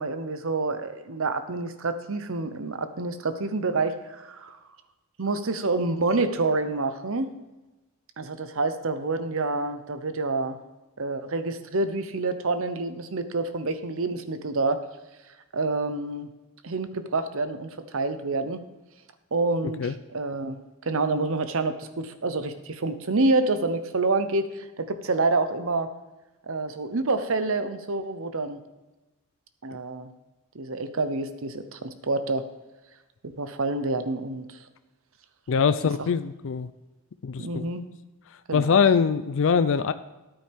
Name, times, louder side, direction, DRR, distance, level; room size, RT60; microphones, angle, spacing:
voice 1, 0.0-4.6 5.2-7.3 8.2-10.6 11.0-14.8 15.5-16.3 16.6-18.6 19.3-20.6 20.8-25.9 26.5-28.6 29.6-30.1 30.5-32.5 33.2-34.5 37.4-37.8 38.5-38.7, right 3 dB, 65° right, 10 dB, 0.9 m, -27 dB
voice 2, 35.5-36.7 37.2-37.7 38.5-39.9, left 6 dB, 60° left, 12 dB, 0.4 m, -22 dB
13.5 x 9.0 x 3.5 m, 1.1 s
head